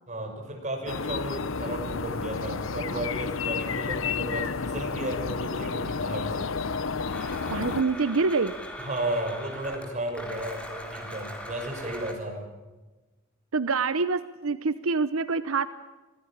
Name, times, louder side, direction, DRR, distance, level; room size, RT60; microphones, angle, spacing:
voice 1, 0.1-6.5 8.8-12.4, right 1 dB, 35° right, 3 dB, 6.4 m, -34 dB
sound 1, 0.9-7.8, left 5 dB, 70° left, 0.8 m, -31 dB
Domestic sounds home sounds, 7.1-12.1, equal, 5° left, 3.8 m, -40 dB
voice 2, 7.5-8.5 13.5-15.7, right 4 dB, 85° right, 13 dB, 0.9 m, -26 dB
26.5 x 16.5 x 9.0 m, 1.2 s
head